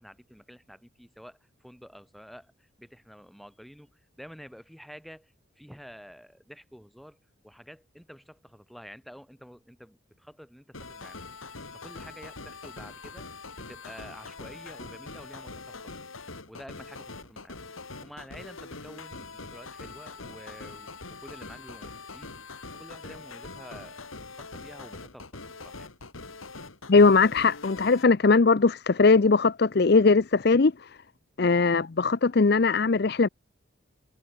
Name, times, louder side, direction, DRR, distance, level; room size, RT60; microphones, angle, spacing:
voice 1, 0.0-7.2 7.4-11.2 11.7-13.3 13.6-16.0 16.5-17.6 18.0-22.3 22.7-25.9, equal, ahead, 5.2 m, -49 dB
sound 1, 10.7-28.0, left 3 dB, 90° left, 3.1 m, -43 dB
voice 2, 26.9-30.7 31.4-33.3, left 4 dB, 50° left, 0.6 m, -20 dB
head